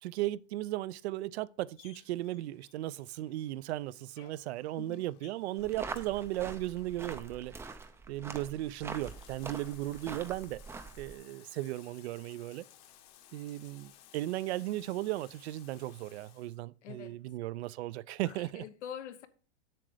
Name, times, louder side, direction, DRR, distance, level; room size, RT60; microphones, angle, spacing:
voice 1, 0.0-7.5 8.1-10.6 11.0-12.6 13.3-18.6, right 15 dB, 65° right, 0.6 m, -36 dB
Bathtub (filling or washing), 1.7-16.6, left 11 dB, 40° left, 1.2 m, -60 dB
sound 1, 5.6-11.1, right 4 dB, 5° right, 0.5 m, -44 dB
voice 2, 16.8-17.2 18.2-19.3, left 9 dB, 80° left, 1.1 m, -45 dB
7.7 x 6.7 x 4.9 m
supercardioid pair, 140°, 35 cm